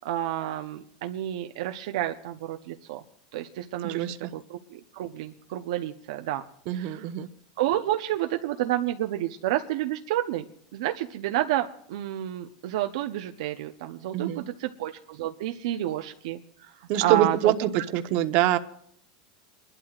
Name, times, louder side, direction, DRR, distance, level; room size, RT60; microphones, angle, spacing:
voice 1, 0.0-3.0 3.3-6.4 6.7-7.1 7.6-10.5 10.7-17.5, right 13 dB, 75° right, 6 dB, 0.7 m, -30 dB
voice 2, 3.8-4.3 6.7-7.3 14.1-14.5 16.9-18.6, right 12 dB, 55° right, 10 dB, 1.0 m, -25 dB
30.0 x 12.0 x 2.4 m, 0.67 s
supercardioid pair, 125°, 3 cm